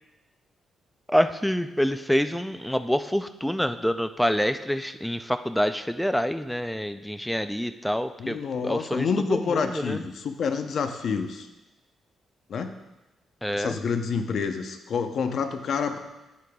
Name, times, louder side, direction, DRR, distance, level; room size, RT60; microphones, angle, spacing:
voice 1, 1.1-10.0 13.4-13.8, equal, 5° left, 10 dB, 0.3 m, -26 dB
voice 2, 8.2-11.5 12.5-12.7 13.5-16.0, left 5 dB, 60° left, 7 dB, 0.6 m, -28 dB
9.5 x 8.4 x 2.3 m, 1.0 s
cardioid pair, 135°, 0 cm